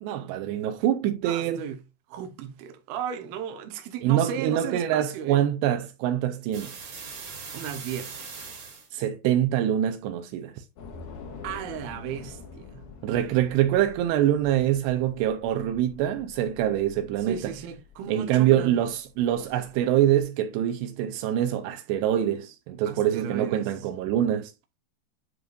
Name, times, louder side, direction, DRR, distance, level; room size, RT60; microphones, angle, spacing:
voice 1, 0.0-1.6 4.0-6.7 8.9-10.5 13.0-17.5 18.1-24.5, right 11 dB, 90° right, 2.5 m, -25 dB
voice 2, 1.2-1.8 2.1-5.4 7.5-8.2 11.4-12.8 17.2-18.8 22.8-23.7, right 8 dB, 70° right, 2.4 m, -35 dB
sound 1, 6.5-8.9, right 5 dB, 45° right, 3.1 m, -40 dB
Train / Subway metro underground, 10.8-20.2, left 5 dB, 65° left, 3.5 m, -47 dB
9.5 x 5.1 x 2.5 m
omnidirectional pair, 5.5 m